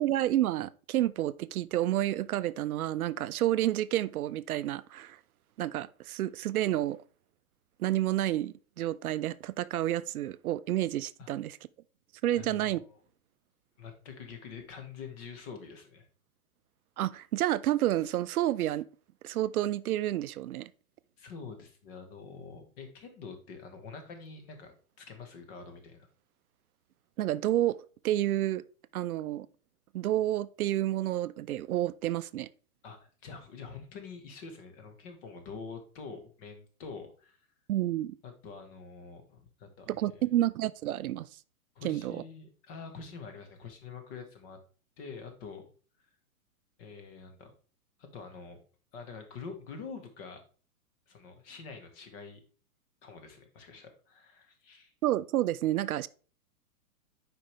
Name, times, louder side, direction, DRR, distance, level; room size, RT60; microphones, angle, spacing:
voice 1, 0.0-5.2 5.6-7.0 7.8-11.6 12.2-12.8 17.0-18.9 19.2-20.7 27.2-27.8 28.0-28.6 28.9-29.5 29.9-32.5 37.7-38.1 39.9-41.3 41.8-42.2 55.0-56.1, right 13 dB, 75° right, 0.5 m, -29 dB
voice 2, 12.3-13.0 13.8-16.1 21.2-26.1 32.8-37.4 38.2-40.2 41.7-44.6 45.0-45.7 46.8-47.5 48.0-48.6 48.9-50.4 51.1-52.4 53.0-54.9, left 5 dB, 40° left, 1.6 m, -46 dB
7.4 x 4.9 x 3.4 m
hypercardioid pair, 135°, 44 cm